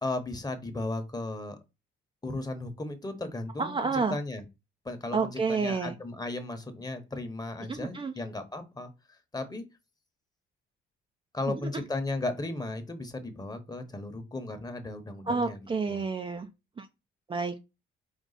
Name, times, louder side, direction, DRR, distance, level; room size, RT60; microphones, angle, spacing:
voice 1, 0.0-1.6 2.2-4.4 4.8-8.9 9.3-9.6 11.3-16.0, left 2 dB, 20° left, 1.1 m, -35 dB
voice 2, 3.6-4.2 5.1-5.9 7.7-8.1 11.5-11.6 15.3-16.5 16.8-16.9 17.3-17.6, right 4 dB, 25° right, 0.5 m, -29 dB
5.3 x 2.4 x 4.0 m
cardioid pair, 90°, 20 cm